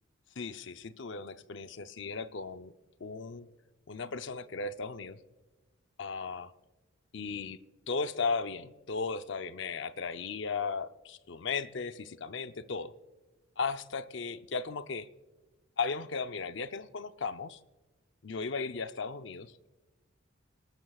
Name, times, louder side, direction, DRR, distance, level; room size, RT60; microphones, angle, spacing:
voice 1, 0.4-2.7 3.0-3.5 3.9-5.2 6.0-6.5 7.1-7.6 7.9-12.9 13.6-15.1 15.8-17.6 18.2-19.7, left 4 dB, 60° left, 11 dB, 0.6 m, -36 dB
27.0 x 12.0 x 2.4 m, 1.2 s
head